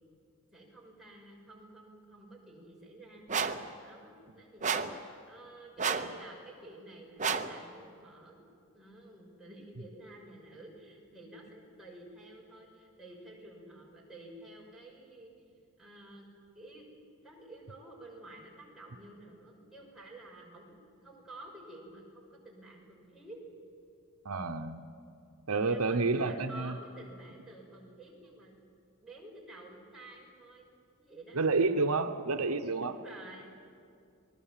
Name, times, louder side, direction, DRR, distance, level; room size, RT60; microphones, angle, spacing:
voice 1, 0.5-3.3 3.8-8.5 8.7-15.3 15.8-16.3 16.5-16.8 17.2-23.4 25.7-28.6 29.0-30.7 31.0-31.4 32.7-33.4, right 2 dB, ahead, -4 dB, 5.6 m, -51 dB
sound 1, 3.3-3.7 4.6-5.0 5.8-6.2 7.2-7.6, right 5 dB, 35° right, 0.9 m, -31 dB
voice 2, 24.2-24.8 25.5-26.7 31.4-32.9, right 3 dB, 80° right, 8 dB, 0.9 m, -29 dB
27.5 x 20.0 x 7.5 m, 2.4 s
head